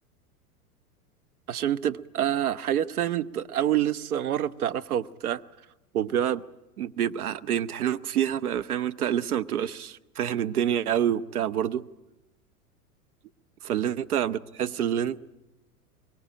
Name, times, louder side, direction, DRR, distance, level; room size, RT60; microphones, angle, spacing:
voice 1, 1.5-5.4 5.9-6.4 6.8-11.9 13.7-15.3, right 10 dB, 70° right, 1.0 m, -27 dB
23.5 x 23.5 x 8.9 m
figure-of-eight pair, 95°, 45 cm